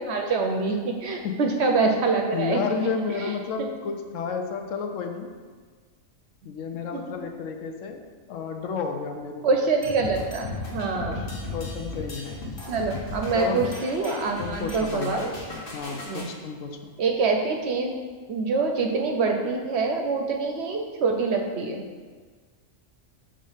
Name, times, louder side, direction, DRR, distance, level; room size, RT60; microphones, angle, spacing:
voice 1, 0.0-2.6 3.2-3.3 6.9-7.0 9.4-11.2 12.7-15.3 16.1-16.3 17.0-17.9 18.3-21.8, right 4 dB, 65° right, 3 dB, 0.8 m, -25 dB
voice 2, 1.2-1.6 2.3-5.3 6.4-8.0 8.3-9.4 11.0-12.5 13.3-13.8 14.4-15.2 15.5-16.9, left 5 dB, 75° left, 5 dB, 0.9 m, -32 dB
sound 1, 9.8-16.3, left 2 dB, 45° left, 1.1 m, -36 dB
4.9 x 3.7 x 5.5 m, 1.5 s
omnidirectional pair, 1.4 m